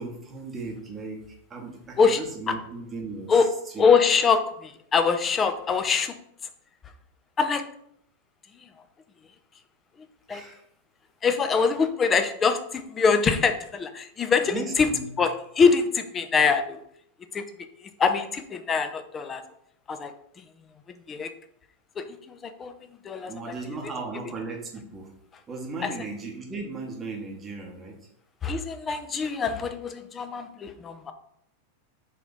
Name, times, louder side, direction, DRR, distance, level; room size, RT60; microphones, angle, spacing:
voice 1, 0.0-3.9 10.3-10.6 14.5-15.2 23.3-25.1 25.5-28.1, right 3 dB, 20° right, 0 dB, 1.0 m, -36 dB
voice 2, 3.8-6.1 7.4-7.6 10.3-10.4 11.2-14.9 15.2-16.8 17.3-17.4 17.8-19.4 19.9-20.4 21.1-21.3 22.0-22.7 23.0-23.3 25.8-25.9 28.4-31.1, left 5 dB, 20° left, 8 dB, 0.4 m, -24 dB
3.4 x 2.8 x 4.0 m, 0.69 s
figure-of-eight pair, 90°, 0 cm